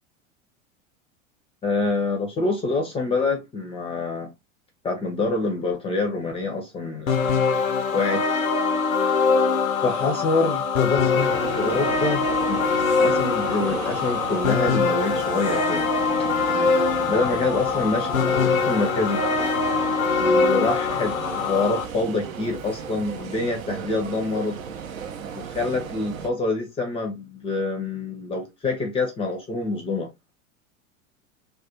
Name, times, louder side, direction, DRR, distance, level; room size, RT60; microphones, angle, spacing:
voice 1, 1.6-4.3 4.8-7.2 7.9-8.2 9.8-12.6 13.0-15.9 17.1-19.2 20.2-24.6 25.3-30.1, left 3 dB, 15° left, 0.4 m, -26 dB
sound 1, 7.1-21.8, left 5 dB, 85° left, 0.5 m, -23 dB
sound 2, 11.2-26.3, right 7 dB, 80° right, 0.5 m, -34 dB
2.3 x 2.2 x 2.8 m
figure-of-eight pair, 85°, 40 cm